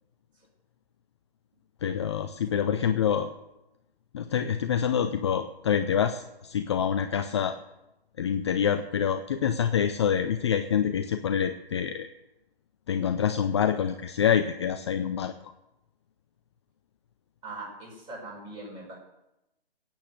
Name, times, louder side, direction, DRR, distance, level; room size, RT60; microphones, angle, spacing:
voice 1, 1.8-3.3 4.1-7.6 8.2-12.1 12.9-15.3, left 8 dB, 25° left, 8 dB, 0.6 m, -26 dB
voice 2, 2.5-3.2 17.4-18.9, right 2 dB, 15° right, -1 dB, 5.7 m, -42 dB
15.5 x 8.9 x 8.0 m, 0.92 s
figure-of-eight pair, 145°, 31 cm